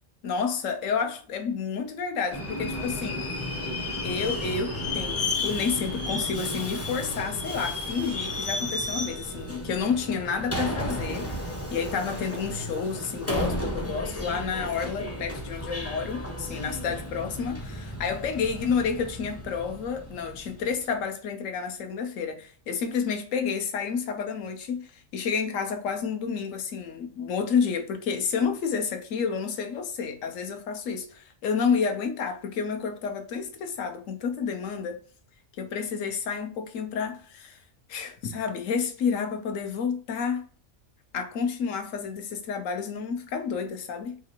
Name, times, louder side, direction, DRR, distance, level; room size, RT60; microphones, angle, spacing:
voice 1, 0.2-3.2 4.0-35.0 35.6-37.6 37.9-40.4 41.1-44.2, left 6 dB, 80° left, 1.1 m, -30 dB
Subway metro underground, 2.3-20.8, left 1 dB, 20° left, 0.4 m, -33 dB
4.4 x 2.4 x 2.9 m
omnidirectional pair, 1.3 m